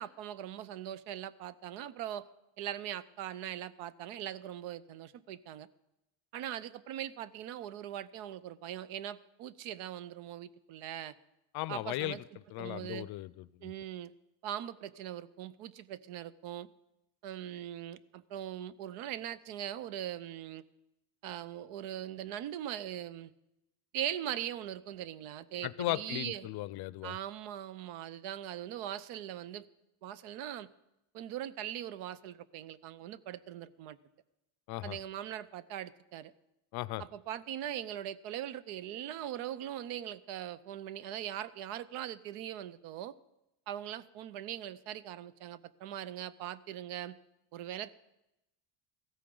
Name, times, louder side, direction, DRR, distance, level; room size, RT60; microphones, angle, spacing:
voice 1, 0.0-2.2 2.6-5.7 6.3-11.1 11.7-13.1 13.6-14.1 14.4-16.7 17.2-20.6 21.2-23.3 23.9-26.5 27.0-29.6 30.0-30.7 31.1-34.0 34.8-36.3 37.0-43.2 43.7-47.2 47.5-47.9, right 11 dB, 85° right, 17 dB, 0.7 m, -41 dB
voice 2, 11.5-12.2 12.5-13.7 25.6-27.2 34.7-35.0 36.7-37.0, left 17 dB, 55° left, 18 dB, 0.5 m, -37 dB
15.5 x 13.5 x 3.8 m, 0.90 s
cardioid pair, 130°, 48 cm